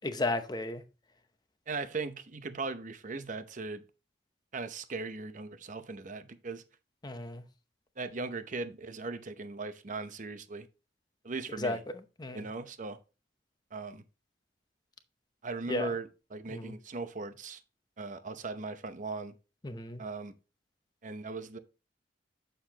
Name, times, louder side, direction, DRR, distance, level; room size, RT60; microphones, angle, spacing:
voice 1, 0.0-0.8 7.0-7.4 11.6-11.8 12.2-12.4 15.7-15.9 16.5-16.7 19.6-20.0, left 2 dB, 25° left, 0.8 m, -33 dB
voice 2, 1.7-3.8 4.5-6.6 8.0-10.7 11.2-11.8 12.3-13.0 13.7-14.0 15.4-17.6 18.0-19.3 20.0-20.3 21.0-21.6, right 3 dB, 45° right, 0.8 m, -38 dB
7.8 x 6.7 x 2.9 m
head